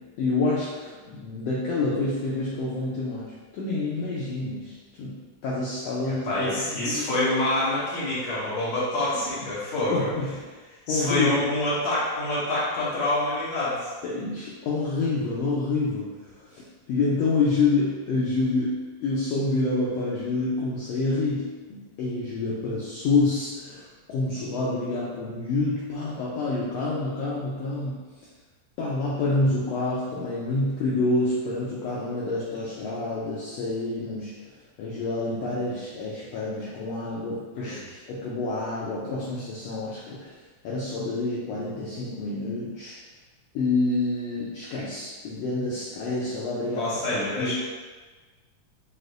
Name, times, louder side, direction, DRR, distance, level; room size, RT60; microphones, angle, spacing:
voice 1, 0.0-5.2 5.4-7.2 9.1-9.2 9.9-10.4 10.9-11.4 14.0-28.0 28.8-34.4 34.8-37.8 38.1-40.4 40.6-43.0 43.5-47.5, left 3 dB, 80° left, -7 dB, 1.4 m, -28 dB
voice 2, 6.1-10.1 10.9-13.9 37.6-37.8 46.8-47.5, left 1 dB, 65° left, -9 dB, 2.2 m, -26 dB
6.3 x 2.5 x 2.5 m, 1.3 s
omnidirectional pair, 3.6 m